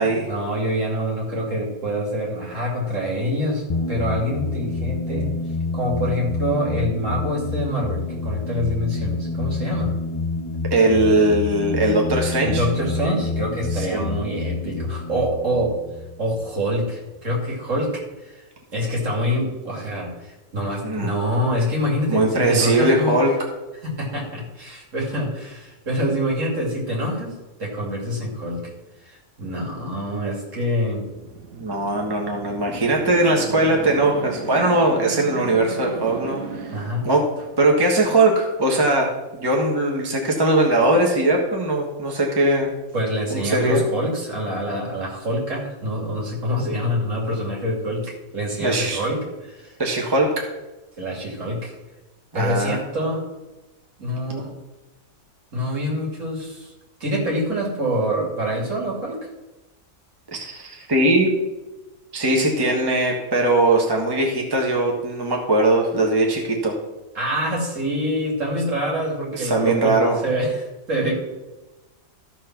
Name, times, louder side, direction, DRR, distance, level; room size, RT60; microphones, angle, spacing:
voice 1, 0.0-5.3 5.7-9.9 12.4-15.8 16.2-18.4 18.7-23.2 23.8-27.3 27.6-28.7 29.0-31.1 36.7-37.1 42.9-49.7 51.0-51.7 52.3-53.2 54.0-54.5 55.5-56.7 57.0-59.3 67.1-71.1, equal, 65° right, -2 dB, 2.9 m, -26 dB
sound 1, 3.7-16.9, left 3 dB, 55° left, 0.3 m, -28 dB
voice 2, 10.7-12.6 13.7-14.0 20.8-21.1 22.1-23.3 31.5-36.7 37.0-37.2 37.6-42.7 43.3-43.8 48.6-49.0 49.8-50.3 52.3-52.8 60.3-61.3 62.1-66.7 69.3-70.2, right 2 dB, 20° right, 0 dB, 1.3 m, -20 dB
sound 2, 30.9-37.8, right 5 dB, 80° right, 1.4 m, -36 dB
13.5 x 4.6 x 5.9 m, 1.1 s
omnidirectional pair, 1.5 m